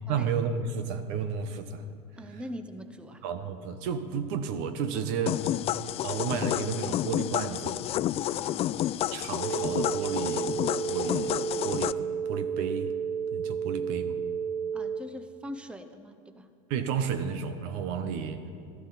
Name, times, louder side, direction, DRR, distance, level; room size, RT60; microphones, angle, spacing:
voice 1, 0.0-1.9 2.3-2.4 3.2-5.6 6.0-7.8 9.1-10.6 10.9-12.9 13.3-14.2 16.7-18.5, right 6 dB, 65° right, 10 dB, 1.1 m, -32 dB
voice 2, 2.2-3.2 8.3-8.7 14.7-16.5, equal, 5° right, 9 dB, 0.8 m, -42 dB
sound 1, 5.3-11.9, left 13 dB, 35° left, 0.3 m, -30 dB
sound 2, 9.4-15.0, right 7 dB, 80° right, 0.6 m, -32 dB
18.0 x 13.0 x 4.1 m, 2.3 s
hypercardioid pair, 95°, 17 cm